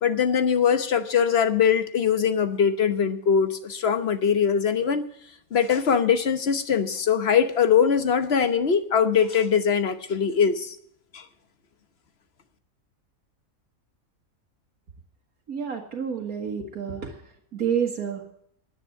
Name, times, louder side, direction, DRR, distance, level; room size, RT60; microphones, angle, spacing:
voice 1, 0.0-5.0 5.5-10.8 11.1-11.2, left 7 dB, 50° left, 10 dB, 1.2 m, -22 dB
voice 2, 15.5-17.2 17.5-18.3, right 7 dB, 90° right, -1 dB, 2.0 m, -29 dB
9.9 x 9.9 x 8.5 m, 0.69 s
omnidirectional pair, 1.5 m